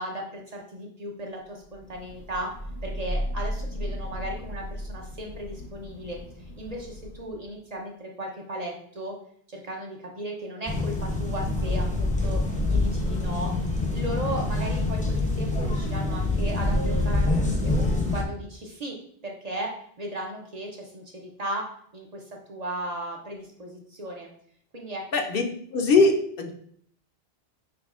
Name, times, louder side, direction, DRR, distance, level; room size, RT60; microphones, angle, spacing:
voice 1, 0.0-6.2 6.6-9.1 9.5-12.4 12.7-13.5 13.9-17.8 18.1-19.0 19.2-22.2 22.5-24.3 24.7-25.0, right 1 dB, 45° right, 0 dB, 0.6 m, -36 dB
Thunder / Rain, 1.7-7.5, equal, 85° left, 1.4 m, -35 dB
sound 1, 10.6-18.2, left 2 dB, 10° left, 0.5 m, -25 dB
voice 2, 25.1-25.4 25.7-26.5, left 3 dB, 65° left, 4 dB, 0.8 m, -21 dB
6.0 x 3.0 x 2.4 m, 0.63 s
omnidirectional pair, 1.1 m